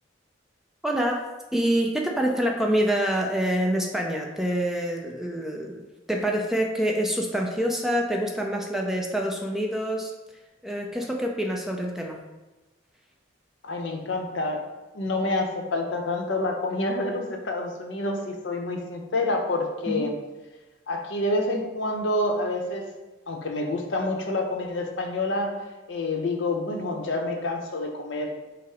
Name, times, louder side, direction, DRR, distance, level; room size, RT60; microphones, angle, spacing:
voice 1, 0.8-5.8 6.1-10.1 10.6-12.2 19.9-20.0, equal, ahead, 0 dB, 0.4 m, -26 dB
voice 2, 13.6-14.7 14.9-20.2 20.9-22.9 23.3-25.6 25.9-28.3, left 2 dB, 65° left, 3 dB, 0.7 m, -28 dB
5.4 x 2.0 x 4.9 m, 1.1 s
head